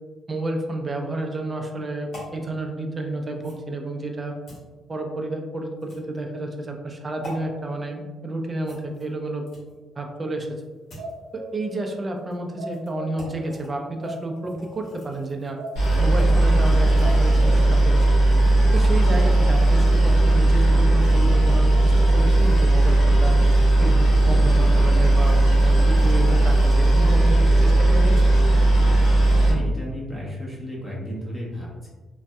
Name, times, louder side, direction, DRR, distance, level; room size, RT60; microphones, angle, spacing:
voice 1, 0.3-4.3 4.9-9.4 10.0-10.5 11.3-15.6 16.0-18.1 18.7-23.3 23.8-28.3, right 2 dB, 30° right, 2 dB, 0.5 m, -30 dB
sound 1, 2.1-2.4 3.4-3.6 4.5-4.6 5.8-6.2 7.2-7.4 8.6-9.8 10.5-11.2 12.2-12.3 12.7-12.9 13.2-13.7 14.0-18.3 18.6-18.8, left 1 dB, 60° left, 1.2 m, -44 dB
sound 2, 11.0-11.6 12.6-13.2 14.0-14.7 15.2-15.3 15.6-16.2 16.7-17.5, right 1 dB, 65° right, 0.8 m, -37 dB
Boat Water vehicle, 15.8-29.5, right 2 dB, 80° left, 1.2 m, -17 dB
voice 2, 28.8-31.9, equal, 20° left, -5 dB, 1.0 m, -34 dB
3.2 x 2.6 x 2.3 m, 1.3 s
cardioid pair, 90°, 0 cm